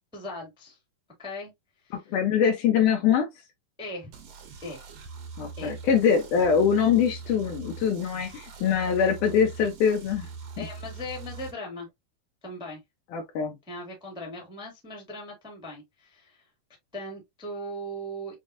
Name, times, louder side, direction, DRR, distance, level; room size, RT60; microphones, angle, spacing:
voice 1, 0.1-0.8 1.2-1.5 1.8-2.2 3.8-4.1 4.6-4.8 5.6-5.8 10.6-11.9 12.4-12.8 13.7-16.4 16.9-18.4, left 1 dB, 5° right, 0.9 m, -38 dB
voice 2, 2.1-3.3 5.4-10.3 10.6-10.7 13.1-13.6, left 7 dB, 75° left, 2.1 m, -23 dB
sound 1, 4.1-11.5, right 5 dB, 70° right, 3.1 m, -42 dB
7.2 x 2.4 x 2.5 m
omnidirectional pair, 4.2 m